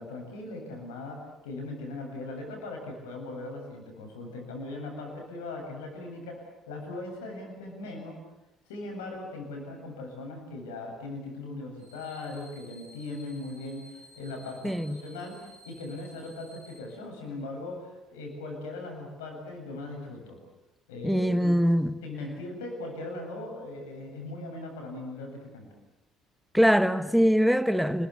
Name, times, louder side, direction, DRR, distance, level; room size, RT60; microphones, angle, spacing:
voice 1, 0.0-8.2 8.7-20.4 20.9-21.6 22.0-25.7, left 2 dB, 75° left, 7.9 m, -39 dB
sound 1, 11.8-16.8, equal, 80° right, 7.9 m, -54 dB
voice 2, 14.6-15.0 21.0-21.9 26.5-28.1, equal, ahead, 2.1 m, -23 dB
29.5 x 22.0 x 8.6 m
figure-of-eight pair, 50°, 0 cm